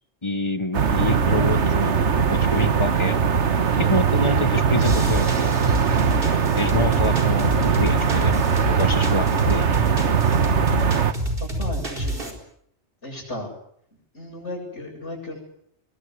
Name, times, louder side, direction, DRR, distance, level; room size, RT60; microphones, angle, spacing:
voice 1, 0.2-3.2 3.8-5.5 6.5-8.4 8.7-9.7, left 2 dB, 25° left, 12 dB, 1.3 m, -27 dB
sound 1, 0.7-11.1, right 6 dB, 80° right, 1.6 m, -20 dB
sound 2, 4.8-12.3, right 1 dB, 55° right, 4.7 m, -28 dB
voice 2, 11.4-12.3 13.0-13.5 14.1-15.4, left 1 dB, 90° left, -5 dB, 8.4 m, -34 dB
23.5 x 22.5 x 9.6 m, 0.70 s
omnidirectional pair, 1.2 m